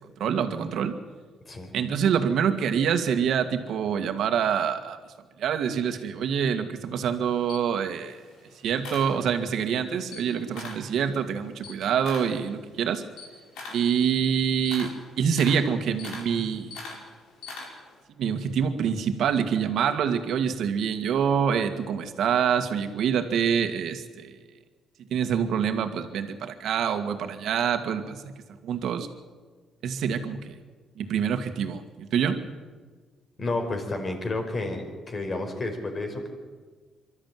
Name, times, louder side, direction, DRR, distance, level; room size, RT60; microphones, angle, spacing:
voice 1, 0.2-0.9 1.7-5.0 5.4-8.2 8.6-13.0 13.7-14.9 15.2-16.7 18.2-24.3 25.1-28.3 28.6-29.1 29.8-30.5 31.0-32.4, right 7 dB, 75° right, 7 dB, 1.9 m, -26 dB
Camera, 7.1-9.7 10.0-10.9 11.3-18.0, left 3 dB, 85° left, 4.7 m, -42 dB
voice 2, 33.4-36.3, left 2 dB, 40° left, 4 dB, 4.7 m, -31 dB
24.0 x 13.0 x 9.3 m, 1.4 s
cardioid pair, 90°, 0 cm